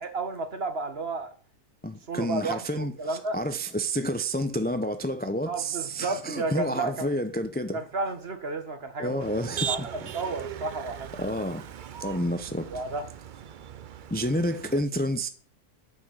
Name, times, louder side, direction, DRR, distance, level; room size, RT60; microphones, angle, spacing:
voice 1, 0.0-1.3 2.1-3.4 5.5-7.1 7.7-9.2 9.7-11.1 12.6-13.1, right 3 dB, 40° right, 1.7 m, -32 dB
voice 2, 1.8-7.8 9.0-9.9 11.2-11.6 12.0-12.7 14.1-15.3, equal, 15° left, 0.4 m, -29 dB
Motor vehicle (road), 9.2-14.8, right 8 dB, 80° right, 0.4 m, -38 dB
9.4 x 6.3 x 7.9 m
omnidirectional pair, 1.6 m